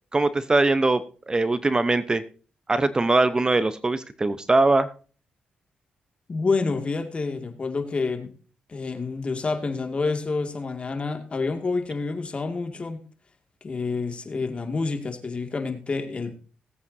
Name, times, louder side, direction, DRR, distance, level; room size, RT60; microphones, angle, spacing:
voice 1, 0.1-2.2 2.7-4.9, right 2 dB, 25° right, 13 dB, 0.8 m, -21 dB
voice 2, 6.3-8.3 8.7-13.0 13.6-16.3, left 4 dB, 40° left, 6 dB, 2.2 m, -28 dB
20.0 x 8.4 x 2.7 m, 0.38 s
cardioid pair, 75°, 3 cm